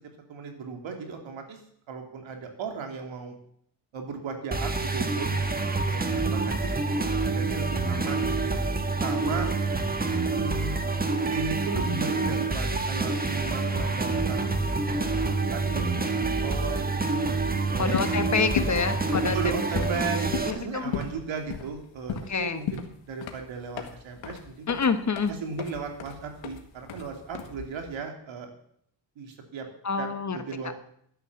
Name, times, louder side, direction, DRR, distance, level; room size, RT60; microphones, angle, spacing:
voice 1, 0.3-1.6 1.9-3.4 3.9-6.7 7.3-8.6 9.0-9.5 10.3-10.8 11.3-15.2 15.5-17.2 17.7-17.9 19.3-24.7 25.4-28.5 29.2-29.7 30.0-30.7, right 5 dB, 80° right, 4 dB, 2.9 m, -36 dB
sound 1, 4.5-20.5, right 3 dB, 20° right, 1.5 m, -27 dB
voice 2, 17.8-19.4 20.4-20.9 22.3-22.6 24.7-25.3 29.8-30.4, left 5 dB, 40° left, 9 dB, 1.4 m, -27 dB
sound 2, 17.9-28.0, left 7 dB, 85° left, 1.9 m, -35 dB
12.0 x 10.5 x 7.1 m, 0.67 s
cardioid pair, 90°, 45 cm